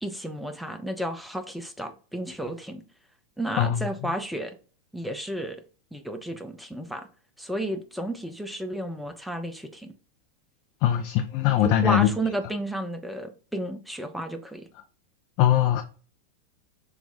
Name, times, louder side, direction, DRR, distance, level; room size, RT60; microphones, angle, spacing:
voice 1, 0.0-2.8 3.4-4.6 4.9-5.6 5.9-7.1 7.4-9.9 11.6-14.7, right 1 dB, ahead, 0.6 m, -32 dB
voice 2, 10.8-12.1 15.4-15.8, left 11 dB, 45° left, 0.5 m, -21 dB
5.8 x 2.3 x 4.0 m
figure-of-eight pair, 90°, 0 cm